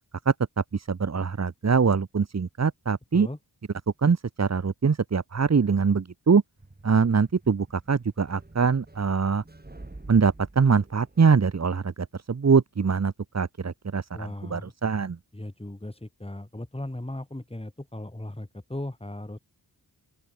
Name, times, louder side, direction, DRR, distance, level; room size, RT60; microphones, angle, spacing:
voice 1, 0.3-3.3 4.0-6.4 6.8-9.4 10.1-15.2, right 5 dB, 40° right, 1.0 m, -23 dB
sound 1, 6.6-11.6, right 2 dB, 25° right, 5.9 m, -48 dB
voice 2, 14.1-14.7 15.3-19.4, left 1 dB, 15° left, 6.2 m, -37 dB
open air
wide cardioid pair, 115°, 41 cm